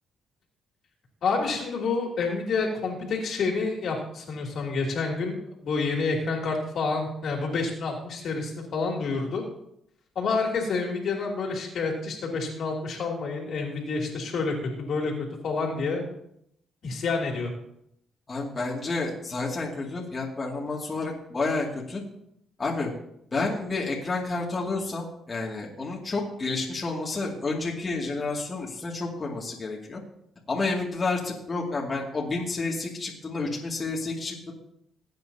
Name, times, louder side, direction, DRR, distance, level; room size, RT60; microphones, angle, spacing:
voice 1, 1.2-5.4 5.6-9.4 10.1-16.0 16.8-17.5, left 4 dB, 65° left, 0 dB, 3.0 m, -28 dB
voice 2, 18.3-22.0 22.6-22.9 23.3-30.0 30.5-34.5, left 3 dB, 30° left, -3 dB, 2.4 m, -30 dB
18.5 x 8.9 x 2.8 m, 0.75 s
cardioid pair, 90°, 0 cm